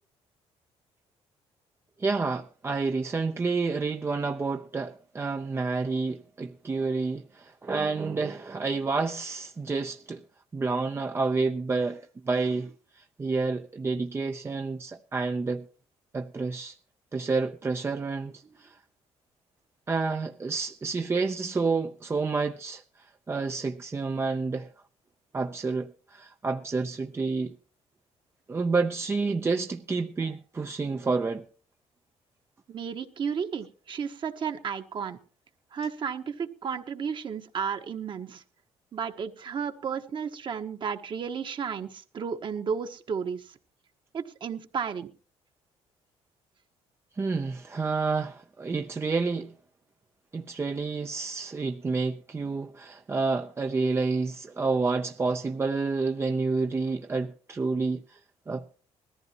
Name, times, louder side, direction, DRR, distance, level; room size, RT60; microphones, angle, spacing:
voice 1, 2.0-10.3 10.5-15.7 16.1-16.8 17.1-18.8 19.9-22.8 23.3-24.7 25.3-27.6 28.5-31.4 47.2-49.5 50.3-58.2 58.5-58.6, right 4 dB, 20° right, 0.6 m, -29 dB
voice 2, 32.7-35.2 35.7-38.4 38.9-43.6 44.1-45.1, right 6 dB, 45° right, 1.4 m, -33 dB
20.0 x 14.5 x 2.9 m
cardioid pair, 110°, 11 cm